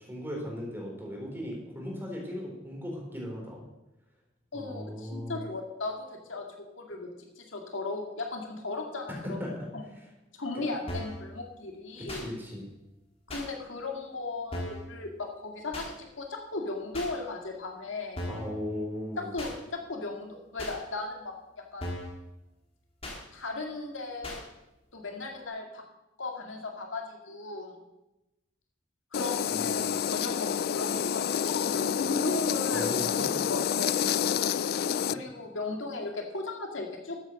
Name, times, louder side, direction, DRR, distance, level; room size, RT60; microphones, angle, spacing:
voice 1, 0.0-3.6 4.5-5.4 9.1-9.7 9.9-10.0 12.0-12.7 18.2-19.3 29.6-29.7 32.7-33.0 33.3-33.4, left 1 dB, 10° right, -2 dB, 3.8 m, -37 dB
voice 2, 4.5-7.1 7.4-9.4 9.7-9.8 10.4-12.2 13.3-18.3 19.2-21.3 21.7-21.9 23.3-24.4 24.9-25.8 26.2-27.8 29.1-33.1 33.5-34.1 35.1-37.2, left 3 dB, 75° left, 2 dB, 2.1 m, -36 dB
sound 1, 10.9-11.2 12.1-12.3 13.3-13.5 14.5-14.9 15.7-15.9 16.9-17.1 18.2-18.5 19.4-19.5 20.6-20.8 21.8-22.2 23.0-23.2 24.2-24.4, left 1 dB, 30° left, 2.7 m, -37 dB
sound 2, 29.1-35.1, left 8 dB, 50° left, 0.3 m, -28 dB
13.0 x 8.0 x 6.4 m, 0.97 s
head